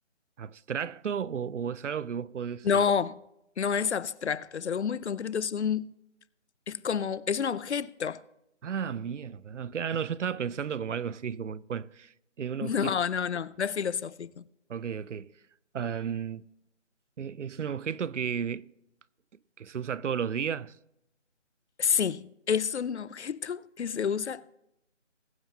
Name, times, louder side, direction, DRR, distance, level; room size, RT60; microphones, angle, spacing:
voice 1, 0.4-2.8 8.6-12.1 12.4-12.9 14.7-15.3 15.7-16.5 17.2-18.7 19.6-20.7, right 7 dB, 75° right, 0.5 m, -33 dB
voice 2, 2.6-3.2 3.6-5.9 6.7-8.2 12.6-14.4 21.8-24.5, left 7 dB, 65° left, 0.5 m, -29 dB
20.5 x 8.9 x 2.8 m
figure-of-eight pair, 175°, 37 cm